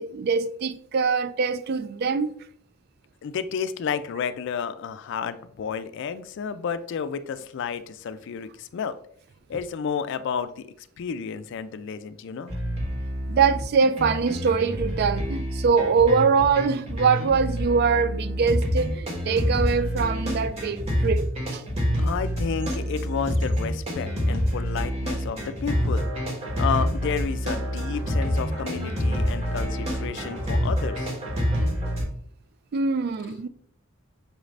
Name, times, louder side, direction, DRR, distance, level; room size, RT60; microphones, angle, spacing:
voice 1, 0.0-2.3 13.3-21.2 21.5-21.6 32.7-33.5, right 5 dB, 50° right, 0.3 m, -23 dB
voice 2, 3.2-9.0 9.5-10.6 11.0-12.5 22.0-26.1 26.6-31.1, left 6 dB, 60° left, 0.3 m, -31 dB
sound 1, 12.5-32.1, equal, 30° right, 1.1 m, -27 dB
6.0 x 2.5 x 3.2 m
head